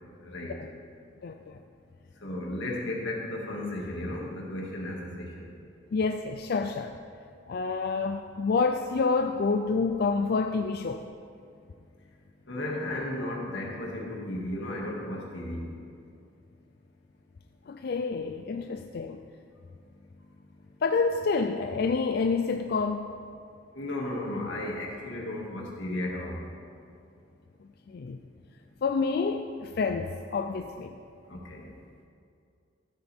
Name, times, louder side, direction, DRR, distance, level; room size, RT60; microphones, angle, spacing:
voice 1, 0.2-0.5 2.2-5.5 12.5-15.7 23.7-26.4 31.3-31.7, left 1 dB, 85° left, -2 dB, 2.1 m, -34 dB
voice 2, 1.2-1.6 5.9-7.0 7.5-11.0 17.7-19.2 20.8-23.1 27.9-28.2 28.8-30.9, left 4 dB, 55° left, 5 dB, 0.4 m, -28 dB
14.0 x 8.8 x 3.5 m, 2.4 s
head